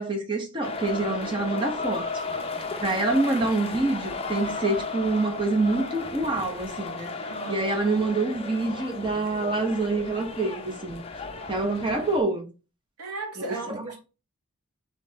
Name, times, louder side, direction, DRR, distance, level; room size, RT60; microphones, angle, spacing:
voice 1, 0.0-2.4 2.8-11.0 11.5-12.5 13.5-13.8, right 2 dB, 20° right, 0.9 m, -26 dB
sound 1, 0.6-12.2, left 3 dB, 25° left, 0.6 m, -34 dB
voice 2, 7.3-7.7 13.0-14.0, right 3 dB, 90° right, 1.2 m, -36 dB
3.8 x 3.1 x 4.0 m
head